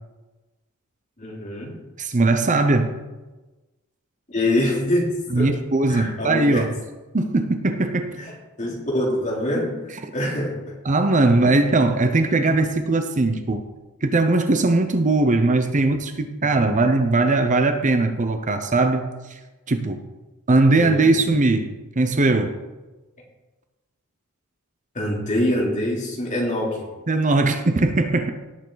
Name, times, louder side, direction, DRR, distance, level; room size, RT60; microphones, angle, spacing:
voice 1, 1.2-1.7 4.3-5.1 5.3-5.5 5.9-6.7 8.2-8.3 8.6-9.7 10.1-10.5 20.8-21.1 24.9-26.8, left 1 dB, 35° left, -3 dB, 3.2 m, -24 dB
voice 2, 2.0-3.0 5.3-6.7 7.1-8.2 10.8-13.6 14.0-19.4 19.7-20.0 20.5-21.7 22.0-22.6 27.1-28.3, right 2 dB, 35° right, 7 dB, 0.7 m, -20 dB
18.0 x 7.3 x 4.0 m, 1.1 s
head